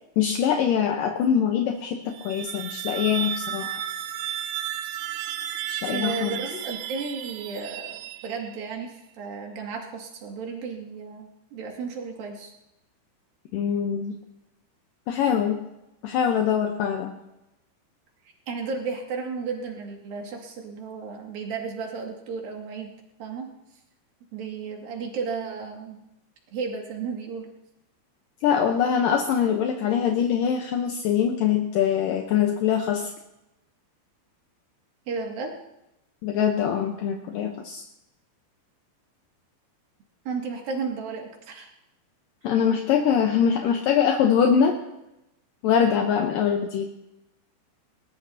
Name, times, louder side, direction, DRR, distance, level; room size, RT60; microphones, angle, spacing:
voice 1, 0.2-3.7 5.7-6.4 13.5-14.2 15.1-15.6 16.0-17.1 28.4-33.1 36.2-37.8 42.4-44.8 45.6-46.9, left 8 dB, 75° left, 3 dB, 2.0 m, -23 dB
sound 1, 2.0-8.7, right 12 dB, 90° right, 3.1 m, -33 dB
voice 2, 5.9-12.5 18.5-22.9 23.2-23.5 24.3-26.0 26.5-27.5 35.1-35.6 40.3-41.7, right 5 dB, 60° right, 1 dB, 3.6 m, -33 dB
20.5 x 19.0 x 2.9 m, 0.89 s
omnidirectional pair, 5.3 m